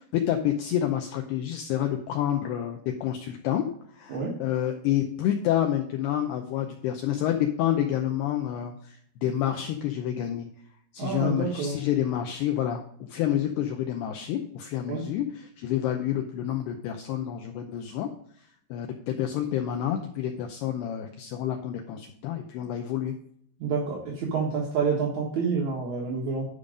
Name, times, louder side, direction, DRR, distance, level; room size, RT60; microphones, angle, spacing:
voice 1, 0.0-3.7 3.9-10.5 10.9-18.1 18.7-23.2, left 11 dB, 90° left, 4 dB, 2.3 m, -28 dB
voice 2, 11.0-11.8 14.9-15.0 23.6-26.4, right 5 dB, 60° right, -4 dB, 2.0 m, -28 dB
11.5 x 5.4 x 5.1 m, 0.65 s
omnidirectional pair, 5.6 m